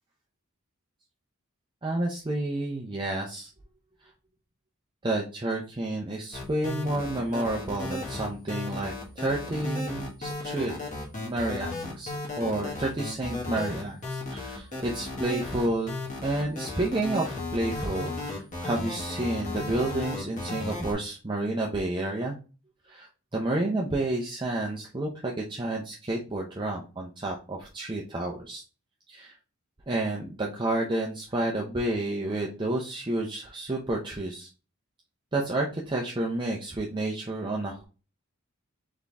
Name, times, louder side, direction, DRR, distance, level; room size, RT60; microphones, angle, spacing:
voice 1, 1.8-3.5 5.0-10.7 11.2-22.4 22.9-23.1 23.3-28.6 29.1-29.3 29.9-34.5 35.3-37.8, right 2 dB, 20° right, -2 dB, 0.6 m, -30 dB
sound 1, 6.3-20.9, left 2 dB, 35° left, 1.6 m, -34 dB
4.3 x 3.6 x 3.4 m, 0.34 s
head